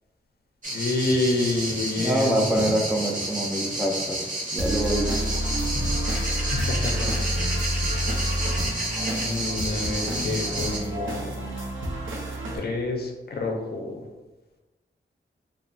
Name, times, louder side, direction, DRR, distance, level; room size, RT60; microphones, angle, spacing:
sound 1, 0.6-10.8, right 1 dB, 40° right, 0.8 m, -30 dB
voice 1, 0.7-2.5 6.5-7.4 9.2-11.4 12.5-14.0, left 2 dB, 55° left, 1 dB, 0.5 m, -28 dB
voice 2, 2.0-5.1, right 1 dB, 5° right, -1 dB, 0.3 m, -25 dB
sound 2, 4.6-12.6, equal, 80° right, 0.5 m, -28 dB
2.9 x 2.1 x 2.6 m, 1.1 s
wide cardioid pair, 95°, 20 cm